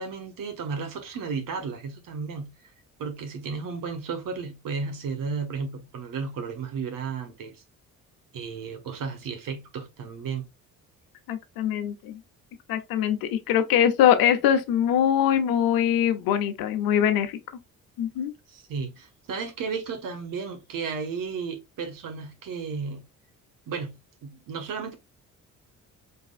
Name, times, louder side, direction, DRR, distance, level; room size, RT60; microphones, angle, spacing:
voice 1, 0.0-2.7 3.0-7.6 8.3-10.5 18.5-23.0 23.7-24.9, right 5 dB, 70° right, 1.5 m, -34 dB
voice 2, 11.3-12.2 12.7-17.4 18.0-18.3, left 10 dB, 85° left, 0.9 m, -23 dB
4.5 x 3.5 x 2.4 m
supercardioid pair, 75°, 34 cm